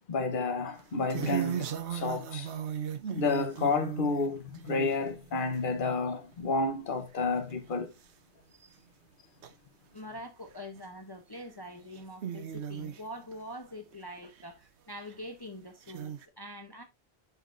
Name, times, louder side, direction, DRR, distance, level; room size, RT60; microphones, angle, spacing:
voice 1, 0.1-2.5 3.1-7.9, left 3 dB, 50° left, 1.2 m, -30 dB
sound 1, 0.8-5.9 6.3-6.7 7.2-7.3 7.5-7.6 8.0-8.1 9.4-9.5 10.5-10.8 11.3-11.4 11.8-13.4 13.9-14.4 15.1-15.2 15.9-16.3, right 9 dB, 80° right, 1.1 m, -37 dB
voice 2, 9.9-16.8, equal, 25° left, 0.9 m, -44 dB
8.3 x 6.5 x 2.6 m
omnidirectional pair, 1.1 m